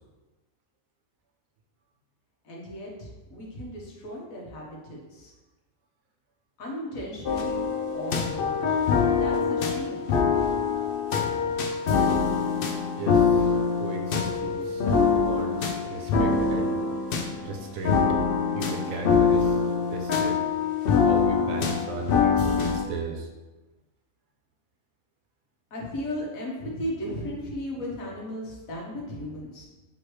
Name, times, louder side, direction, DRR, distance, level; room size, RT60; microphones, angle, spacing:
voice 1, 2.4-5.3 6.6-7.7 7.9-10.1 25.7-29.7, left 1 dB, 80° left, -3 dB, 1.5 m, -36 dB
sound 1, 7.2-22.8, left 5 dB, 65° left, 0.6 m, -24 dB
voice 2, 12.9-16.8 17.4-18.1 18.6-19.6 19.9-20.4 20.9-23.3, right 4 dB, 85° right, 3 dB, 1.1 m, -36 dB
4.7 x 3.4 x 3.1 m, 1.1 s
omnidirectional pair, 1.4 m